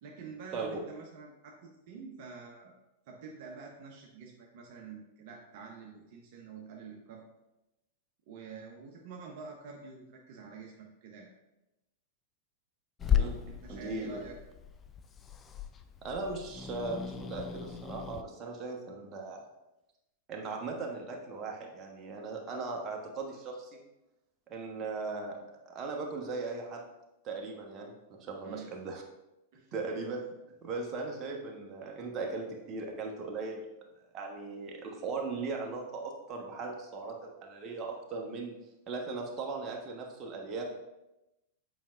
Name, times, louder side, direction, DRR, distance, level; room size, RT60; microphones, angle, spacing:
voice 1, 0.0-2.7 3.1-7.2 8.3-11.3 13.5-14.4 28.4-28.7 29.5-29.8, right 5 dB, 50° right, -1 dB, 0.8 m, -47 dB
Growling / Hiss, 13.0-18.2, left 9 dB, 20° left, 0.4 m, -35 dB
voice 2, 13.7-14.1 16.0-19.5 20.3-23.8 24.5-25.4 25.7-26.8 27.2-29.0 29.7-30.2 30.6-33.6 34.1-38.5 38.9-40.6, right 3 dB, 30° right, 1 dB, 1.1 m, -38 dB
7.5 x 5.1 x 2.4 m, 0.95 s
figure-of-eight pair, 95°, 0 cm